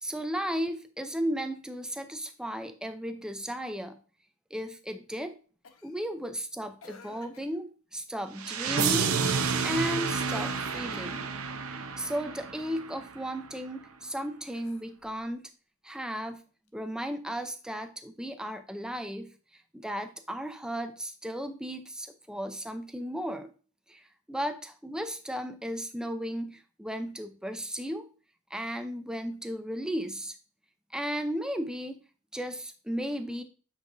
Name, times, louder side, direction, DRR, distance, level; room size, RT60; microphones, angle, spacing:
voice 1, 0.0-4.0 4.5-5.3 5.8-9.2 9.6-11.3 11.7-15.5 15.8-16.4 16.7-19.3 19.7-23.5 23.9-28.1 28.5-30.4 30.9-32.0 32.3-33.4, equal, 5° right, 8 dB, 0.5 m, -35 dB
Cough, 5.6-6.0 6.8-7.6 8.8-9.1 10.2-11.3 14.4-15.2 16.7-16.8, left 4 dB, 80° left, 0.9 m, -49 dB
sound 1, 8.4-13.3, right 5 dB, 85° right, 0.7 m, -30 dB
8.2 x 4.8 x 2.6 m, 0.38 s
head